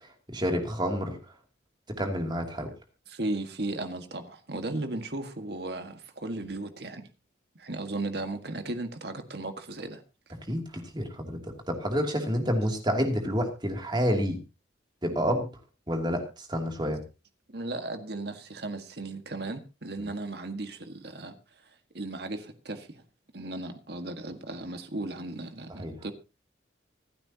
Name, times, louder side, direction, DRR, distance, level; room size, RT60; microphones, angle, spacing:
voice 1, 0.3-1.2 2.0-2.7 10.5-10.6 10.9-11.4 11.7-14.4 15.0-15.5 15.9-17.0 20.0-20.1 25.8-25.9, equal, 25° right, 3 dB, 2.7 m, -28 dB
voice 2, 3.1-7.1 7.6-10.0 17.5-21.4 21.9-23.0 23.3-26.1, right 2 dB, 55° right, 7 dB, 1.7 m, -36 dB
25.5 x 8.9 x 2.9 m, 0.29 s
head